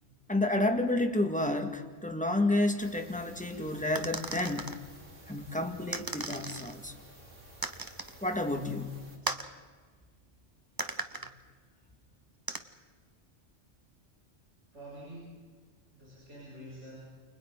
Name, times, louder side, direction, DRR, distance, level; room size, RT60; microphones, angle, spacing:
voice 1, 0.3-4.7 5.3-6.9 8.2-9.1, left 1 dB, 5° left, 4 dB, 1.9 m, -30 dB
sound 1, 2.8-9.2, right 1 dB, 90° right, 4.2 m, -53 dB
sound 2, 3.9-4.8 5.9-6.7 7.6-8.2 9.2-9.5 10.8-11.3 12.5-12.6, right 2 dB, 20° right, 1.0 m, -36 dB
voice 2, 14.7-15.4 15.9-17.0, right 1 dB, 70° right, -7 dB, 8.6 m, -47 dB
30.0 x 28.5 x 4.0 m, 1.5 s
omnidirectional pair, 1.2 m